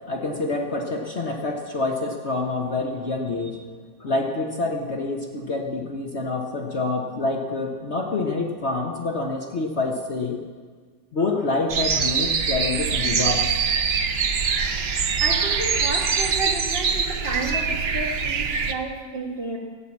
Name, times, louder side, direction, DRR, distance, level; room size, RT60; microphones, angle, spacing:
voice 1, 0.1-3.6 4.0-10.4 11.1-13.5, left 3 dB, 45° left, 1 dB, 1.2 m, -27 dB
sound 1, 11.7-18.7, right 6 dB, 55° right, 0.7 m, -23 dB
voice 2, 15.2-19.6, right 2 dB, 35° right, 0 dB, 1.6 m, -31 dB
12.5 x 9.2 x 7.2 m, 1.5 s
omnidirectional pair, 1.9 m